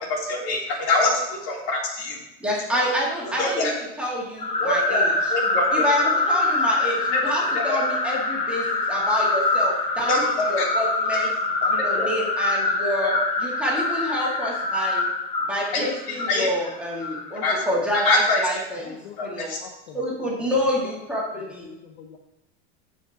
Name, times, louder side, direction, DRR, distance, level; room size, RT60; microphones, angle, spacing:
voice 1, 0.1-1.1 1.4-2.2 2.7-2.9 3.4-3.7 4.6-5.8 7.1-7.2 7.5-7.8 10.1-10.2 10.6-10.7 11.8-12.1 13.0-13.2 15.7-15.9 16.3-16.5 17.4-17.6 17.9-18.4 19.2-19.6, left 2 dB, 60° left, -3 dB, 3.2 m, -24 dB
voice 2, 2.4-5.3 5.7-10.2 10.5-11.3 11.7-13.1 13.4-15.1 15.4-19.0 19.2-19.5 19.9-21.7, equal, 5° right, -5 dB, 1.9 m, -27 dB
sound 1, 4.4-17.8, left 2 dB, 20° left, 1.0 m, -25 dB
voice 3, 18.8-20.0 20.8-20.9 21.7-22.2, left 8 dB, 80° left, 4 dB, 0.9 m, -44 dB
15.0 x 5.1 x 2.9 m, 0.93 s
supercardioid pair, 150°, 32 cm